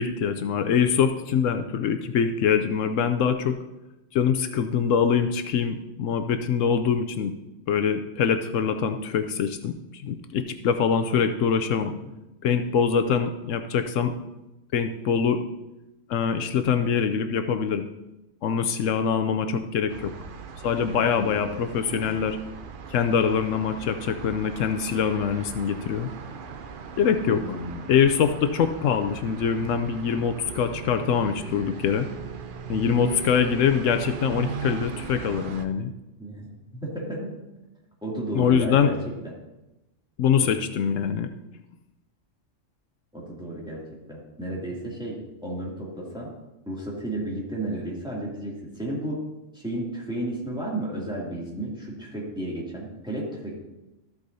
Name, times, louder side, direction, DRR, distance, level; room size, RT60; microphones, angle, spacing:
voice 1, 0.0-3.6 4.1-7.3 7.7-11.9 12.4-14.1 14.7-15.4 16.1-17.9 18.4-20.1 20.6-22.4 22.9-26.1 27.0-27.4 27.9-32.1 32.7-35.9 38.3-38.9 40.2-41.3, left 7 dB, 80° left, 8 dB, 0.9 m, -24 dB
Plaza Castilla boulevard, 19.9-35.7, right 6 dB, 50° right, 0.7 m, -38 dB
voice 2, 27.3-27.9 36.2-37.3 38.0-39.0 40.4-40.5 43.1-43.8 44.1-46.3 46.7-49.2 49.5-53.6, right 1 dB, 5° right, -5 dB, 2.4 m, -33 dB
13.0 x 8.3 x 2.7 m, 0.97 s
omnidirectional pair, 1.3 m